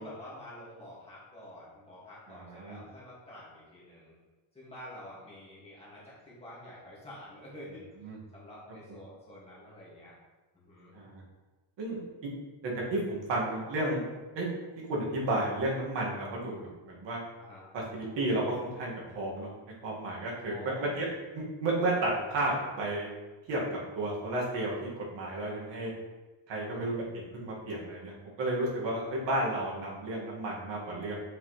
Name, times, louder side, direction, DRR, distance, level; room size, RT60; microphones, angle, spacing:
voice 1, 0.0-4.2 4.5-7.8 8.3-10.1 10.5-10.9 17.4-17.7 20.5-21.2 26.6-26.9 29.0-29.2, left 1 dB, 15° left, -8 dB, 2.2 m, -48 dB
voice 2, 2.3-2.8 8.0-8.2 10.9-11.2 11.8-12.3 12.6-14.1 14.4-14.5 14.9-17.2 17.7-19.5 19.8-21.1 21.3-23.1 23.5-25.9 26.5-27.0 27.3-31.1, right 1 dB, 70° right, -4 dB, 2.2 m, -32 dB
7.5 x 5.2 x 3.3 m, 1.2 s
cardioid pair, 175°, 45 cm